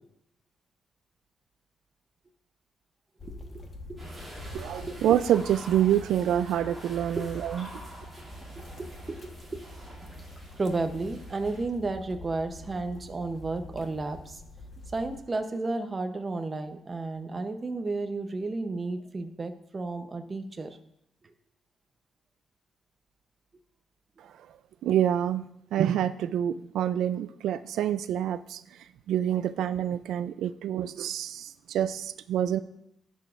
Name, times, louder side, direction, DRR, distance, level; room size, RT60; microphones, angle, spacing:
sound 1, 3.2-15.2, left 1 dB, 30° left, 1.2 m, -45 dB
voice 1, 3.2-3.6 3.9-4.0 4.9-5.0 7.2-7.4 8.6-9.7 10.6-14.4 14.9-20.8, right 3 dB, 25° right, 7 dB, 0.7 m, -33 dB
sound 2, 4.0-11.6, right 1 dB, 5° right, 2.5 m, -47 dB
voice 2, 4.5-7.7 24.8-28.6 29.1-32.6, right 10 dB, 90° right, 13 dB, 0.3 m, -27 dB
16.5 x 6.9 x 2.5 m, 0.78 s
cardioid pair, 155°, 0 cm